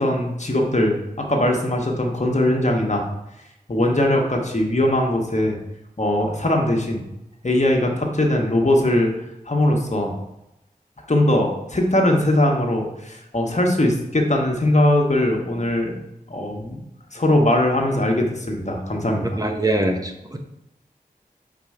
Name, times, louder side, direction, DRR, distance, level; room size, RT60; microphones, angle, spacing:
voice 1, 0.0-3.0 3.7-5.6 6.0-7.0 7.4-9.1 9.5-10.1 11.1-15.9 16.3-16.8 17.1-19.4, left 1 dB, 50° left, 1 dB, 1.2 m, -20 dB
voice 2, 19.4-20.4, right 1 dB, 25° right, 3 dB, 0.8 m, -23 dB
5.0 x 4.3 x 4.8 m, 0.89 s
wide cardioid pair, 40°, 16 cm